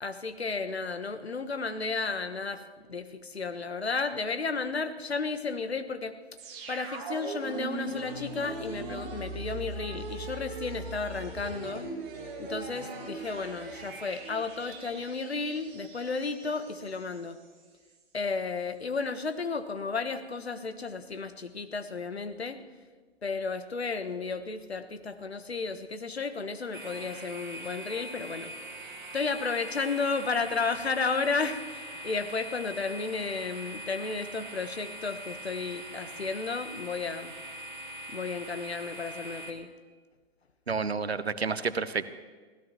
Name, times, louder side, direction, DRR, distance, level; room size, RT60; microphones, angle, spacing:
voice 1, 0.0-2.6 2.9-6.1 6.7-11.8 12.4-17.4 18.1-22.6 23.2-28.5 29.1-37.3 38.1-39.7, left 4 dB, 75° left, 9 dB, 1.2 m, -33 dB
sound 1, 6.4-17.2 17.5-17.6, right 2 dB, 30° right, 3.8 m, -40 dB
sound 2, 26.7-39.5, right 1 dB, 50° right, 1.9 m, -42 dB
voice 2, 40.7-42.1, right 5 dB, 75° right, 13 dB, 1.0 m, -30 dB
24.5 x 16.0 x 3.0 m, 1.4 s
figure-of-eight pair, 120°, 32 cm